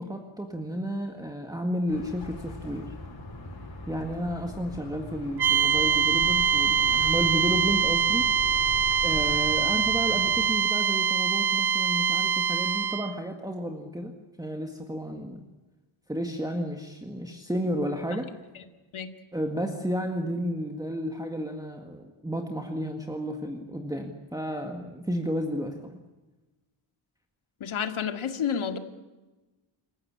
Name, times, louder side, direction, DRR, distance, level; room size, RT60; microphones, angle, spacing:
voice 1, 0.0-2.9 3.9-8.6 9.0-14.1 14.4-15.4 16.1-18.3 19.3-26.0, equal, 5° right, 4 dB, 1.8 m, -32 dB
sound 1, 1.9-10.5, left 2 dB, 50° left, 5.3 m, -40 dB
sound 2, 5.4-13.1, right 6 dB, 50° right, 1.0 m, -24 dB
voice 2, 27.6-28.8, left 7 dB, 75° left, 7 dB, 2.2 m, -30 dB
27.5 x 15.5 x 9.8 m, 1.1 s
wide cardioid pair, 155°, 49 cm